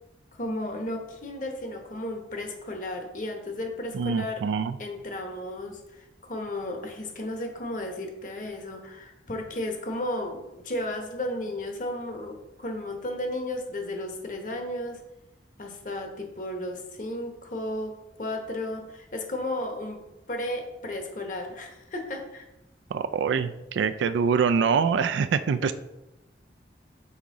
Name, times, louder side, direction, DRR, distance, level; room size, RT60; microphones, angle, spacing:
voice 1, 0.3-4.4 4.8-15.0 15.6-17.9 18.2-20.0 20.3-22.4, left 1 dB, 45° left, 3 dB, 1.0 m, -34 dB
voice 2, 3.9-4.8 22.9-25.7, right 6 dB, 85° right, 11 dB, 0.3 m, -25 dB
5.5 x 4.6 x 3.7 m, 0.92 s
head